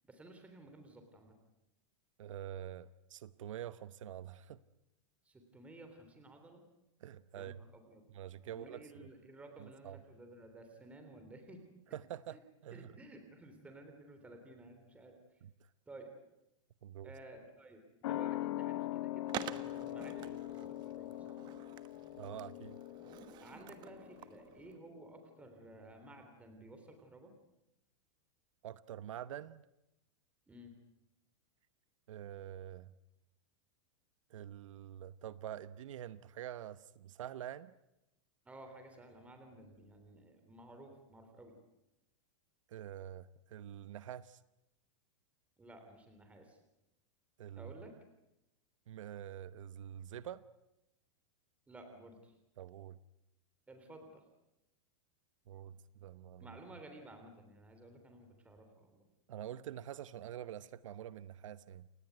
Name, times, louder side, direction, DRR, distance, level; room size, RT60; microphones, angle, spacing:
voice 1, 0.1-1.4 5.2-6.6 7.3-8.1 8.5-11.6 12.3-12.4 12.7-15.2 15.9-16.1 17.0-21.4 23.4-27.3 30.5-30.7 38.4-41.6 45.6-46.6 47.6-47.9 51.7-52.3 53.7-54.2 56.4-59.0, right 2 dB, 10° right, 5 dB, 3.4 m, -54 dB
voice 2, 2.2-4.6 7.0-7.6 8.1-9.1 9.6-10.0 11.9-12.9 15.4-15.5 16.8-17.1 22.2-22.8 28.6-29.6 32.1-32.9 34.3-37.7 42.7-44.4 47.4-47.7 48.9-50.4 52.6-53.0 55.5-56.5 59.3-61.9, right 11 dB, 80° right, 15 dB, 0.9 m, -46 dB
sound 1, 18.0-25.1 25.4-25.5, left 15 dB, 65° left, 1.5 m, -42 dB
Skateboard, 19.3-24.8, right 11 dB, 25° right, 1.3 m, -48 dB
29.0 x 18.0 x 9.3 m, 0.91 s
supercardioid pair, 155°, 16 cm